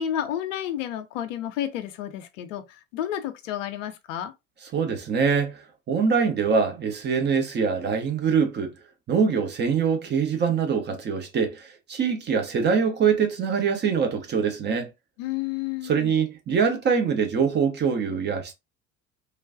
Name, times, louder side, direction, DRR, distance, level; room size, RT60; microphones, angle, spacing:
voice 1, 0.0-4.3 15.2-16.2, left 11 dB, 60° left, 0.6 m, -31 dB
voice 2, 4.7-8.7 9.1-14.9 15.8-18.5, right 6 dB, 25° right, 0.6 m, -24 dB
3.1 x 2.2 x 2.4 m
figure-of-eight pair, 65°, 42 cm